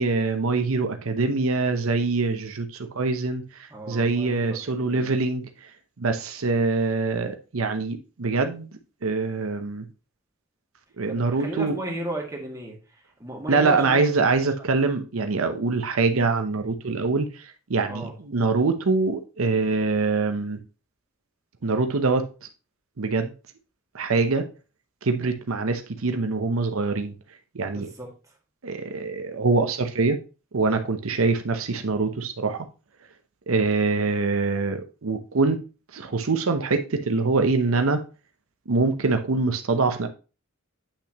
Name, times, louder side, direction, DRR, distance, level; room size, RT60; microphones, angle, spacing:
voice 1, 0.0-5.7 6.0-8.7 9.0-9.8 11.0-11.8 13.5-20.6 21.6-22.3 23.0-23.3 23.9-24.5 25.0-27.1 27.5-27.9 28.6-30.2 30.5-32.7 33.5-35.6 35.9-38.0 38.7-40.1, right 3 dB, 85° right, 0.8 m, -24 dB
voice 2, 3.7-5.1 11.1-12.8 13.2-14.1 14.7-14.8 17.9-18.1 27.7-28.1, right 1 dB, 15° right, 2.0 m, -35 dB
8.5 x 5.8 x 2.9 m
head